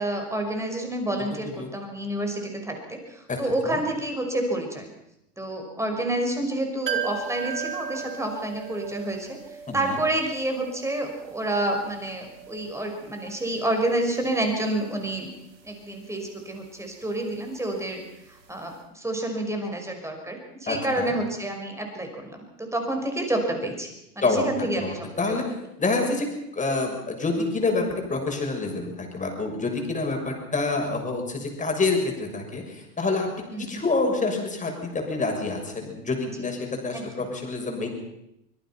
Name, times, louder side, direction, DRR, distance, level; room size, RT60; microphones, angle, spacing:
voice 1, 0.0-4.9 5.4-9.4 9.7-15.3 15.6-18.0 18.5-25.4 33.5-33.8 36.9-37.2, right 1 dB, 5° right, 3 dB, 5.8 m, -29 dB
sound 1, 6.9-18.5 18.7-18.8, right 8 dB, 90° right, 3.0 m, -39 dB
voice 2, 9.7-10.0 20.7-21.1 24.2-24.4 24.8-25.4 25.8-26.3 26.5-37.9, left 3 dB, 15° left, 2 dB, 6.7 m, -27 dB
25.0 x 22.0 x 6.0 m, 0.82 s
hypercardioid pair, 100°, 49 cm